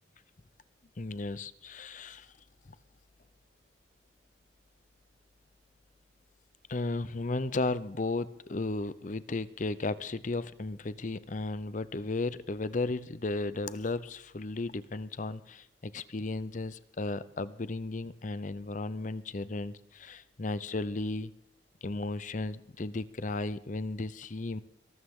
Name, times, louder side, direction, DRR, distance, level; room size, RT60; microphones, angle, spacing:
voice 1, 1.0-2.3 6.7-21.3 21.8-24.6, left 2 dB, 45° left, 16 dB, 0.6 m, -34 dB
22.5 x 13.0 x 3.7 m, 0.70 s
head